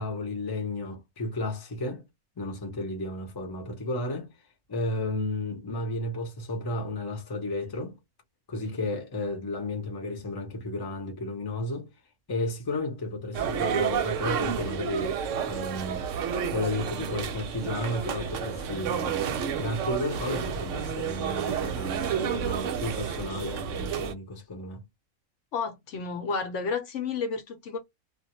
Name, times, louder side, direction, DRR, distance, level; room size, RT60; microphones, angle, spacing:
voice 1, 0.0-2.0 2.4-4.3 4.7-8.0 8.5-11.9 12.3-16.1 16.5-24.8, left 2 dB, 25° left, 0.6 m, -33 dB
sound 1, 13.3-24.1, right 8 dB, 70° right, 0.9 m, -30 dB
voice 2, 25.5-27.8, left 5 dB, 65° left, 0.9 m, -31 dB
2.3 x 2.2 x 3.0 m
omnidirectional pair, 1.5 m